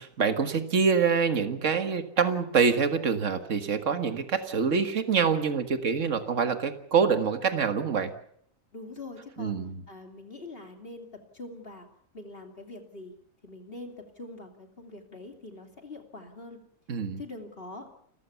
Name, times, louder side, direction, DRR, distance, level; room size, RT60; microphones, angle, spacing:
voice 1, 0.0-8.1 9.4-9.8 16.9-17.2, right 6 dB, 65° right, 8 dB, 1.9 m, -25 dB
voice 2, 8.7-9.6 9.9-11.1 11.3-11.9 12.1-13.1 13.4-16.6 17.2-17.9, left 2 dB, 45° left, 4 dB, 2.9 m, -43 dB
29.0 x 14.5 x 7.0 m, 0.68 s
omnidirectional pair, 1.4 m